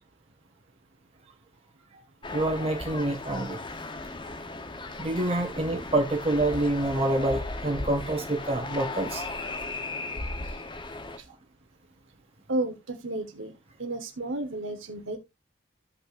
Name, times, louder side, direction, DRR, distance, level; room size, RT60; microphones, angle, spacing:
sound 1, 2.2-11.2, left 2 dB, 25° left, 0.8 m, -36 dB
voice 1, 2.3-3.6 5.0-9.2, right 2 dB, 30° right, 1.7 m, -27 dB
voice 2, 12.5-13.5 13.8-15.2, right 2 dB, 75° right, 1.1 m, -32 dB
14.0 x 5.3 x 2.5 m
head